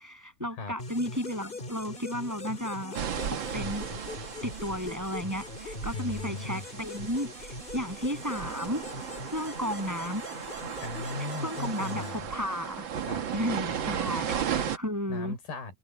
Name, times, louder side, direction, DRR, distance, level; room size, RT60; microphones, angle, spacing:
voice 1, 0.0-3.9 4.4-8.8 9.3-10.2 11.4-12.9 13.3-15.4, equal, 5° right, 7.8 m, -33 dB
sound 1, 0.8-12.9, left 2 dB, 20° left, 1.7 m, -42 dB
sound 2, 2.9-14.8, right 8 dB, 75° right, 1.1 m, -36 dB
voice 2, 5.9-6.7 10.8-12.3 13.1-13.3 15.1-15.7, left 3 dB, 75° left, 6.9 m, -37 dB
omnidirectional pair, 4.3 m